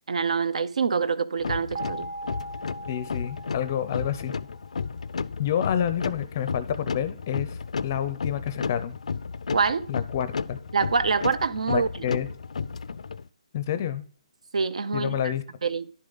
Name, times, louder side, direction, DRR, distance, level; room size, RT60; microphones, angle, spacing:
voice 1, 0.1-2.1 9.5-9.9 10.7-11.9 14.5-15.3 15.6-15.9, right 5 dB, 75° right, 0.7 m, -25 dB
sound 1, 1.4-13.2, left 5 dB, 85° left, 0.4 m, -33 dB
sound 2, 1.7-4.7, right 2 dB, 30° right, 1.0 m, -39 dB
voice 2, 2.9-4.3 5.4-9.0 9.9-10.6 11.7-12.3 13.5-14.0 14.9-15.4, left 9 dB, 25° left, 0.5 m, -28 dB
11.0 x 6.6 x 3.9 m
hypercardioid pair, 175°, 4 cm